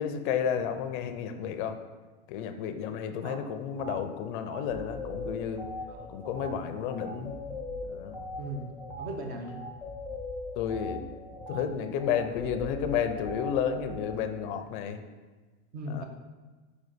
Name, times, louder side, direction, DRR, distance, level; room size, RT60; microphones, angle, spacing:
voice 1, 0.0-1.8 2.3-5.7 6.1-7.4 7.8-8.2 10.6-11.0 11.5-15.0 15.9-16.0, left 8 dB, 45° left, 8 dB, 0.5 m, -31 dB
sound 1, 3.8-4.0 4.4-14.2, left 2 dB, ahead, 0.8 m, -40 dB
voice 2, 8.4-8.7 9.0-9.6 15.7-16.0, right 1 dB, 25° right, 3 dB, 0.8 m, -37 dB
5.0 x 3.9 x 5.0 m, 1.3 s
supercardioid pair, 150°, 35 cm